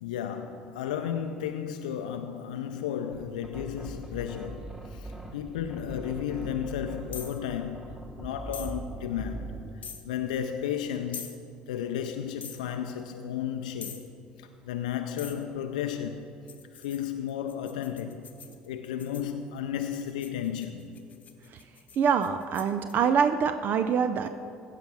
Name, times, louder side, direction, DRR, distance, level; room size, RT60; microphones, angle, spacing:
voice 1, 0.0-9.6 10.0-11.3 11.7-14.1 14.4-16.3 16.7-18.3 18.7-21.0, left 9 dB, 80° left, 0.4 m, -33 dB
sound 1, 3.1-9.8, right 2 dB, 15° right, 2.2 m, -41 dB
sound 2, 7.1-7.4 8.5-8.7 9.8-10.0 11.1-11.4 12.4-12.6 13.8-14.1 15.2-15.4 16.5-19.3 19.9-22.9, left 7 dB, 40° left, 1.0 m, -44 dB
voice 2, 22.0-24.3, right 7 dB, 50° right, 0.5 m, -25 dB
16.0 x 5.8 x 5.6 m
hypercardioid pair, 60°, 4 cm